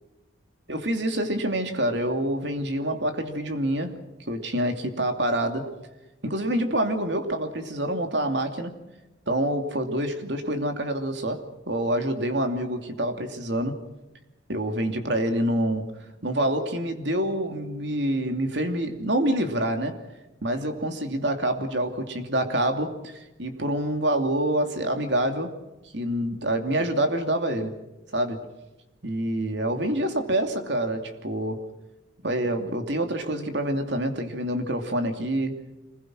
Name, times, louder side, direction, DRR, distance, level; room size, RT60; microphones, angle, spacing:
voice 1, 0.7-5.7 6.2-8.7 9.3-13.8 14.5-15.9 16.2-20.0 20.4-25.5 25.9-27.8 28.1-28.4 29.0-31.6 32.2-35.6, right 1 dB, 70° right, 6 dB, 2.8 m, -27 dB
26.5 x 21.0 x 6.3 m, 1.0 s
head